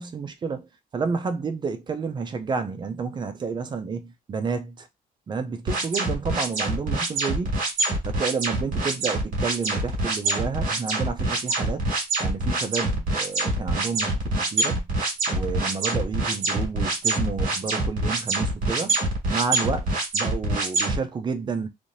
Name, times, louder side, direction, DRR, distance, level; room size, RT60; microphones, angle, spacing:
voice 1, 0.0-4.9 5.3-7.6 8.0-11.8 12.2-14.9 15.3-19.0 19.3-21.7, right 5 dB, 30° right, 0.5 m, -30 dB
sound 1, 5.7-21.0, right 2 dB, 60° right, 1.8 m, -25 dB
3.4 x 2.7 x 2.6 m
cardioid pair, 170°, 15 cm